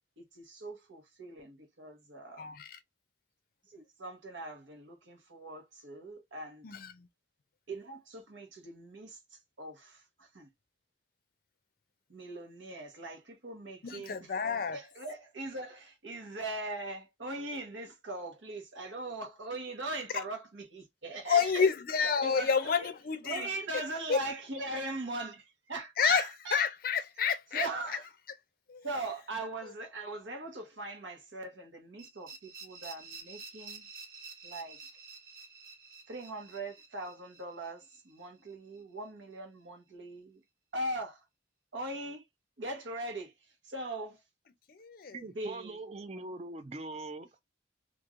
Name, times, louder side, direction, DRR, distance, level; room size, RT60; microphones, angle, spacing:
voice 1, 0.2-2.5 3.7-6.7 7.7-9.2 9.6-10.5 12.1-14.3 14.7-21.7 22.0-22.9 23.2-26.7 27.5-28.1 28.8-33.9 34.4-34.8 36.1-40.4 40.7-41.2 41.7-42.2 42.6-43.3 43.6-44.2 45.3-45.8, right 2 dB, 80° right, 1.1 m, -40 dB
voice 2, 2.4-2.8 6.6-7.1 13.8-14.8 21.3-23.5 24.1-24.2 26.0-27.7 28.7-28.9 44.7-45.1, left 6 dB, 50° left, 0.5 m, -29 dB
sound 1, 32.0-38.8, right 4 dB, 50° right, 1.0 m, -50 dB
voice 3, 45.1-47.4, right 2 dB, 35° right, 0.4 m, -42 dB
3.0 x 2.5 x 2.4 m
head